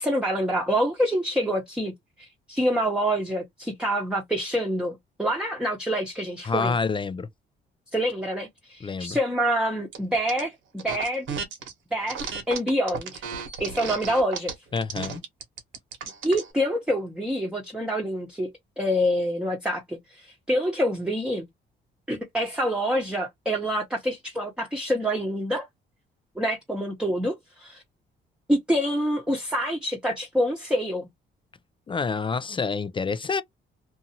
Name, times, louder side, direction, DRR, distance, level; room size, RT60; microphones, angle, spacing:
voice 1, 0.0-1.9 2.2-6.8 7.9-11.3 11.9-13.2 13.6-14.5 16.2-21.5 22.1-25.7 26.4-27.8 28.5-31.1, equal, 5° right, 0.9 m, -26 dB
voice 2, 6.4-7.3 8.8-9.2 14.7-15.2 31.9-33.4, left 4 dB, 25° left, 0.3 m, -27 dB
sound 1, 9.9-10.4 10.8-11.7 12.1-16.5, right 6 dB, 80° right, 1.1 m, -34 dB
2.6 x 2.5 x 2.7 m
cardioid pair, 90°, 20 cm